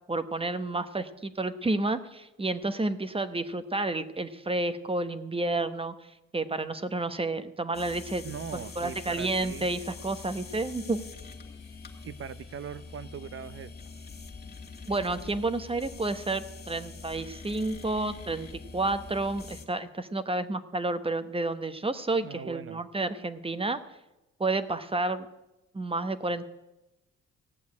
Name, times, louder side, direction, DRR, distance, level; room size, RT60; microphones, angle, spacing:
voice 1, 0.1-8.2 8.5-11.0 14.9-18.5 18.7-23.8 24.4-25.3 25.7-26.4, right 2 dB, 20° right, 12 dB, 1.0 m, -30 dB
sound 1, 7.7-19.7, left 4 dB, 35° left, 2.1 m, -44 dB
voice 2, 8.2-9.7 12.0-13.7 22.2-22.8, right 7 dB, 45° right, 17 dB, 0.7 m, -40 dB
16.5 x 7.1 x 9.6 m, 0.97 s
cardioid pair, 90°, 30 cm